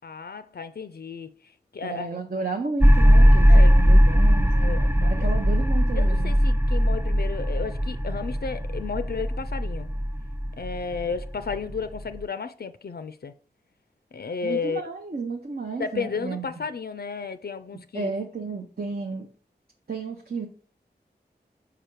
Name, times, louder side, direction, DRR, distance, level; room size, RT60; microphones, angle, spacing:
voice 1, 0.0-2.1 3.5-3.7 4.5-5.3 6.0-9.9 10.6-13.3 14.1-14.8 15.8-18.1, left 5 dB, 65° left, 0.4 m, -33 dB
voice 2, 1.8-6.4 14.4-16.5 17.9-19.3 19.9-20.5, right 4 dB, 60° right, 0.7 m, -32 dB
sound 1, 2.8-12.2, equal, 15° right, 0.5 m, -19 dB
4.9 x 4.7 x 4.5 m
wide cardioid pair, 50°, 17 cm